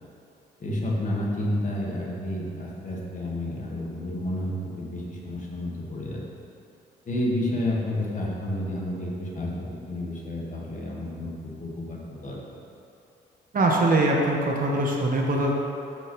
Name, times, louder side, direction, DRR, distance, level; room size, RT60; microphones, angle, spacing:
voice 1, 0.6-6.2 7.0-9.5 9.9-12.4, left 1 dB, 40° left, -3 dB, 1.7 m, -30 dB
voice 2, 13.5-15.5, right 2 dB, 45° right, -1 dB, 1.3 m, -22 dB
12.5 x 5.3 x 3.2 m, 2.7 s
cardioid pair, 90°, 20 cm